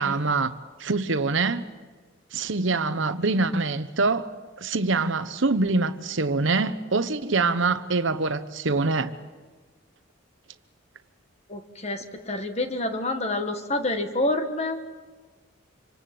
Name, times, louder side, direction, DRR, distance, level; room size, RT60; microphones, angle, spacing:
voice 1, 0.0-1.6 2.3-4.3 4.6-9.1, right 3 dB, 65° right, 1.0 m, -24 dB
voice 2, 11.5-14.8, left 2 dB, 30° left, 1.6 m, -28 dB
26.0 x 25.0 x 7.7 m
head